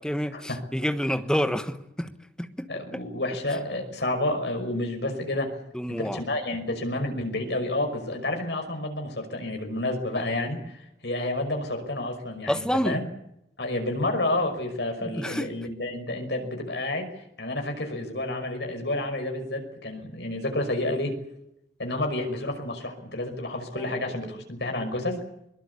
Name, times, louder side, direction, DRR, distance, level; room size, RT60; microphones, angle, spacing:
voice 1, 0.0-2.1 2.4-3.0 5.7-6.2 12.5-13.0 15.0-15.5 23.7-24.0 24.2-24.4, equal, 5° left, 9 dB, 1.3 m, -29 dB
voice 2, 2.7-5.5 5.9-13.1 13.6-17.1 17.4-21.1 21.8-25.2, left 1 dB, 80° left, 4 dB, 5.6 m, -30 dB
22.0 x 21.5 x 8.5 m, 0.81 s
head